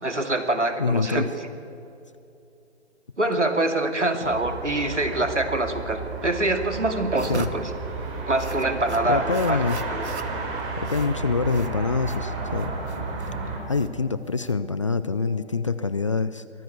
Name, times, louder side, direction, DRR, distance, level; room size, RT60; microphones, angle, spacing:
voice 1, 0.0-1.3 3.2-7.7 8.3-9.6 9.9-10.0, right 2 dB, 85° right, 7 dB, 2.5 m, -25 dB
voice 2, 0.8-1.3 7.3-7.5 9.0-9.8 10.8-12.7 13.7-16.4, left 4 dB, 30° left, 14 dB, 0.4 m, -25 dB
sound 1, 4.2-13.6, right 3 dB, 20° right, 3.4 m, -32 dB
sound 2, 7.1-15.0, right 4 dB, 70° right, 1.3 m, -41 dB
sound 3, 10.6-16.0, left 2 dB, 75° left, 3.7 m, -48 dB
22.5 x 15.0 x 8.4 m, 2.7 s
figure-of-eight pair, 140°, 35 cm